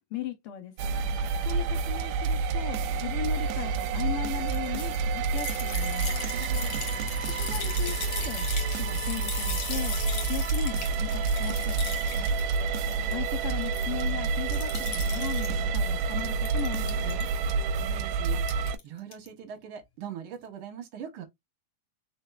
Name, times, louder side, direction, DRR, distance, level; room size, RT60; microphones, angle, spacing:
voice 1, 0.1-1.1 1.4-6.1 7.4-10.0 10.2-11.9 13.1-17.3, left 11 dB, 80° left, 1.3 m, -38 dB
sound 1, 0.8-18.8, right 4 dB, 80° right, 1.7 m, -28 dB
sound 2, 4.5-13.1 13.4-14.1 14.5-15.5 16.0-17.2 18.4-18.8 19.1-19.3, left 6 dB, 50° left, 1.7 m, -38 dB
voice 2, 6.2-6.8 12.1-12.4 17.6-21.2, right 8 dB, 65° right, 1.3 m, -42 dB
4.4 x 4.3 x 2.2 m
omnidirectional pair, 3.5 m